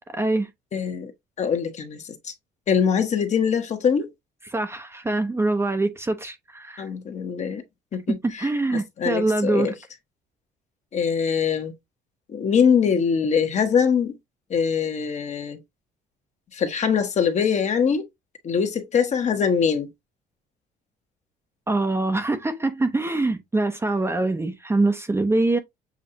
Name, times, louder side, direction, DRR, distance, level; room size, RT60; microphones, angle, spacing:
voice 1, 0.1-0.5 4.5-6.8 8.4-9.7 21.7-25.6, right 2 dB, 15° right, 0.7 m, -24 dB
voice 2, 0.7-1.1 1.4-2.3 2.7-4.1 6.8-7.6 7.9-9.7 10.9-11.7 12.3-14.2 14.5-15.6 16.5-18.0 18.4-19.9, left 6 dB, 45° left, 1.1 m, -23 dB
7.2 x 2.6 x 2.7 m
cardioid pair, 110°, 17 cm